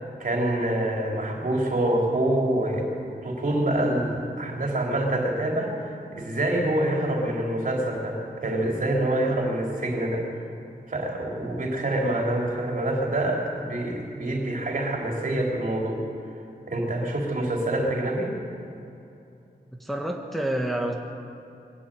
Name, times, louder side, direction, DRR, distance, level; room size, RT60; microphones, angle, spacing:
voice 1, 0.2-2.9 3.2-10.3 10.9-16.0 16.7-18.4, right 1 dB, 55° right, -1 dB, 3.8 m, -26 dB
voice 2, 19.8-20.9, right 1 dB, ahead, 1 dB, 1.5 m, -28 dB
22.5 x 13.0 x 9.3 m, 2.7 s
wide cardioid pair, 125°, 16 cm